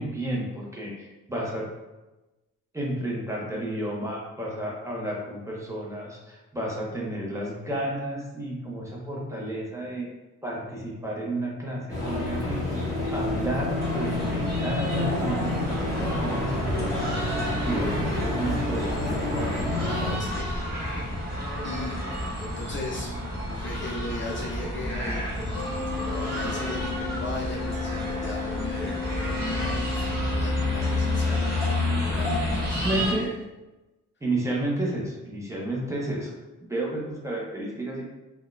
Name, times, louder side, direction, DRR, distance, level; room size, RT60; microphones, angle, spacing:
voice 1, 0.0-1.7 2.7-10.1 10.4-12.7 13.1-17.1 17.6-19.7 32.8-33.3 34.2-36.3 36.6-38.0, right 1 dB, 10° right, -4 dB, 0.6 m, -31 dB
sound 1, 11.9-20.2, left 1 dB, 10° left, 1.2 m, -29 dB
sound 2, 13.8-33.1, left 1 dB, 30° right, 1.0 m, -30 dB
voice 2, 20.2-20.7 21.0-22.0 22.4-23.1 23.5-25.3 25.6-25.7 26.2-33.3, left 2 dB, 40° left, -2 dB, 0.4 m, -38 dB
Organ, 25.5-32.1, left 7 dB, 70° left, 0.7 m, -35 dB
3.8 x 2.2 x 2.4 m, 1.1 s
cardioid pair, 145°, 31 cm